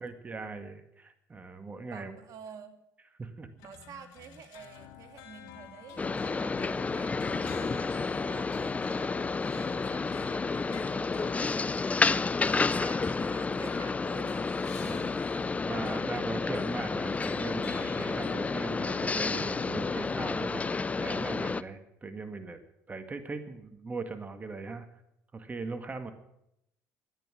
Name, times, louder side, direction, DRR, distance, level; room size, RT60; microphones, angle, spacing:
voice 1, 0.0-2.1 3.2-3.5 7.3-7.8 12.0-13.1 14.8-15.1 15.6-22.6 22.9-24.9 25.3-26.1, right 3 dB, 25° right, 8 dB, 2.0 m, -40 dB
voice 2, 1.8-2.8 3.6-11.8 12.4-14.6 15.1-15.3, right 7 dB, 60° right, 6 dB, 2.6 m, -50 dB
sound 1, 3.6-19.8, left 9 dB, 80° left, 2.7 m, -50 dB
sound 2, 6.0-21.6, left 4 dB, 20° left, 0.6 m, -30 dB
13.5 x 10.0 x 10.0 m, 0.79 s
supercardioid pair, 85°, 7 cm